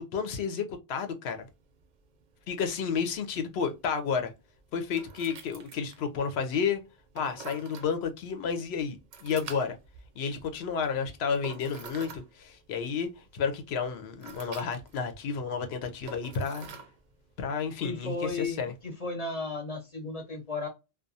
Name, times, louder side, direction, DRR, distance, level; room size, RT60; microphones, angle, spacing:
voice 1, 0.0-1.5 2.5-4.3 4.7-6.8 7.1-9.8 10.2-16.7 17.4-18.7, left 6 dB, 85° left, 0.9 m, -31 dB
sound 1, 1.4-18.9, right 5 dB, 55° right, 0.5 m, -50 dB
voice 2, 17.8-20.7, left 3 dB, 40° left, 0.8 m, -34 dB
2.3 x 2.2 x 2.6 m
omnidirectional pair, 1.0 m